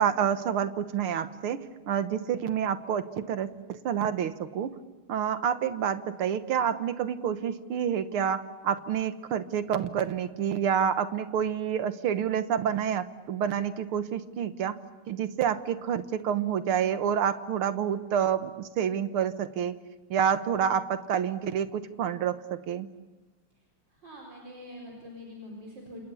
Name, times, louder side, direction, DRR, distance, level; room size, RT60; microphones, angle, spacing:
voice 1, 0.0-4.7 5.1-14.8 15.1-19.8 20.1-22.9, right 8 dB, 90° right, 11 dB, 2.1 m, -28 dB
voice 2, 23.9-26.0, left 1 dB, 60° right, -1 dB, 5.2 m, -44 dB
28.5 x 27.5 x 7.1 m, 1.2 s
omnidirectional pair, 2.3 m